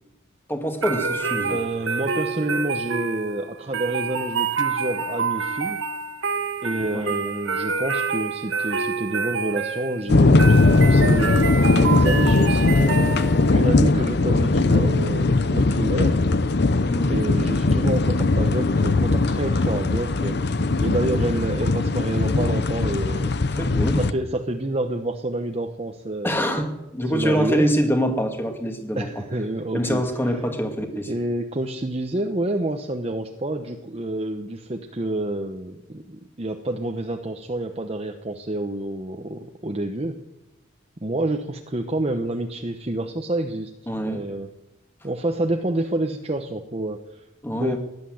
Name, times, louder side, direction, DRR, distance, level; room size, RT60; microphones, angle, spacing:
voice 1, 0.5-1.6 6.9-7.1 16.9-17.3 23.6-24.0 26.2-29.1 29.7-31.1 43.9-44.2 47.4-47.8, equal, 10° left, 5 dB, 2.0 m, -25 dB
sound 1, 0.8-13.6, right 5 dB, 85° right, 1.4 m, -27 dB
voice 2, 1.4-5.8 6.6-11.3 11.6-13.2 13.5-16.2 17.1-20.4 20.8-23.3 23.8-26.4 27.1-27.7 29.0-30.0 30.9-40.2 41.0-43.7 44.0-44.5 45.0-47.2 47.6-47.8, right 1 dB, 30° right, 4 dB, 0.9 m, -28 dB
sound 2, 10.1-24.1, left 2 dB, 60° left, 0.7 m, -19 dB
17.0 x 11.0 x 7.8 m, 0.93 s
head